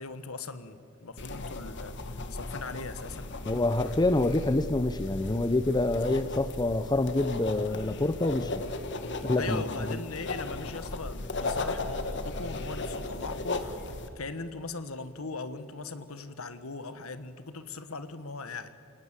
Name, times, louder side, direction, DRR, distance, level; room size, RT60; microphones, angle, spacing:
voice 1, 0.0-3.3 9.4-13.8 14.1-18.7, left 3 dB, 75° left, 11 dB, 1.4 m, -39 dB
sound 1, 1.2-14.1, left 2 dB, 55° left, 1.6 m, -36 dB
voice 2, 3.5-8.6 9.2-10.0, left 2 dB, 20° left, 13 dB, 0.6 m, -27 dB
27.5 x 19.0 x 7.5 m, 2.5 s
head